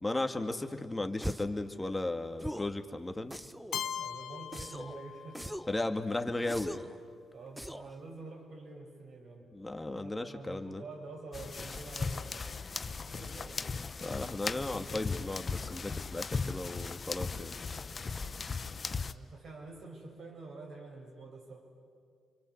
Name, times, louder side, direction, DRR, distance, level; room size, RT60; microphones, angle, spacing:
voice 1, 0.0-3.3 5.7-6.8 9.5-10.8 14.0-17.5, left 2 dB, 15° left, 6 dB, 2.2 m, -35 dB
sound 1, 1.2-1.6 2.4-2.8 3.3-3.8 4.5-5.0 5.4-5.8 6.5-7.0 7.6-8.0, equal, ahead, 1.0 m, -40 dB
Keyboard (musical), 3.7-5.7, left 9 dB, 70° left, 0.8 m, -40 dB
voice 2, 3.8-5.7 7.3-9.5 9.9-12.4 13.0-13.7 19.0-21.6, right 3 dB, 65° right, 1 dB, 6.9 m, -47 dB
sound 2, 11.3-19.1, left 4 dB, 45° left, 1.0 m, -37 dB
29.5 x 24.0 x 8.0 m, 2.1 s
supercardioid pair, 60°, 0 cm